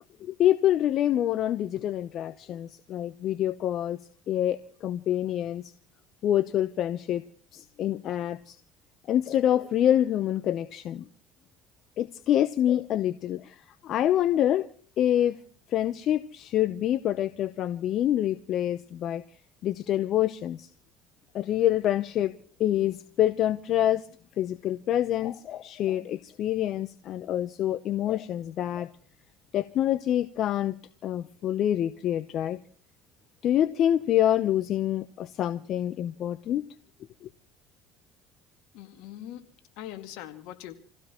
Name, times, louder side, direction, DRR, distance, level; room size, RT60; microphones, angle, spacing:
voice 1, 0.3-4.0 4.3-5.7 6.2-7.2 7.5-8.6 9.1-11.0 12.0-13.5 13.8-14.7 15.0-15.4 15.7-19.2 19.6-20.7 21.3-22.3 22.6-24.0 24.4-28.9 29.5-30.7 31.0-32.6 33.4-36.6, left 11 dB, 55° left, 0.8 m, -26 dB
voice 2, 38.7-40.7, left 12 dB, 75° left, 2.1 m, -42 dB
28.0 x 16.0 x 3.0 m
supercardioid pair, 85°, 0 cm